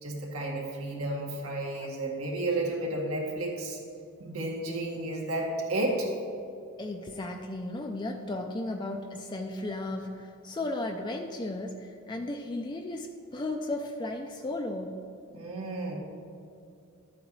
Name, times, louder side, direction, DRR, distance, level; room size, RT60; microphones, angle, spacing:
voice 1, 0.0-3.8 4.2-6.1 15.3-16.0, right 2 dB, 85° right, -1 dB, 2.0 m, -32 dB
voice 2, 6.8-15.0, left 2 dB, 20° left, 3 dB, 0.4 m, -35 dB
12.0 x 9.0 x 3.2 m, 2.6 s
head